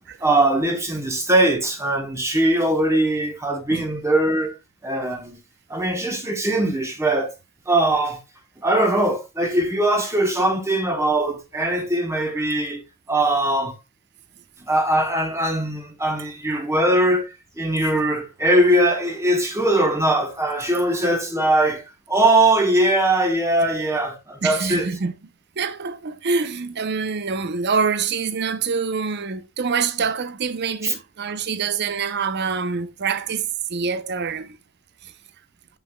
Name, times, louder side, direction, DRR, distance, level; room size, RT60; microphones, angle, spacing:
voice 1, 0.2-4.5 4.8-5.4 5.7-7.3 7.7-8.2 8.6-12.8 13.1-13.7 14.7-21.8 22.1-24.9 30.8-30.9, right 1 dB, 15° right, 1.1 m, -21 dB
voice 2, 24.4-25.1 25.6-34.6, right 5 dB, 50° right, 0.7 m, -25 dB
7.7 x 5.5 x 2.2 m
head